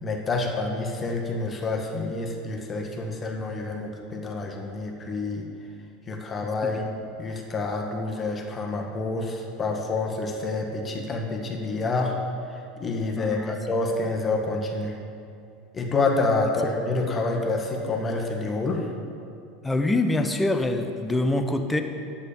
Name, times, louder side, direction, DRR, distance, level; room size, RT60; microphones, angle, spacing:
voice 1, 0.0-5.4 6.1-6.9 7.2-12.2 12.5-14.9 15.7-18.9, left 3 dB, 30° left, 1 dB, 1.7 m, -28 dB
voice 2, 13.1-13.6 19.6-21.8, left 2 dB, 10° left, 6 dB, 1.0 m, -25 dB
10.5 x 8.6 x 5.2 m, 2.5 s
hypercardioid pair, 85°, 0 cm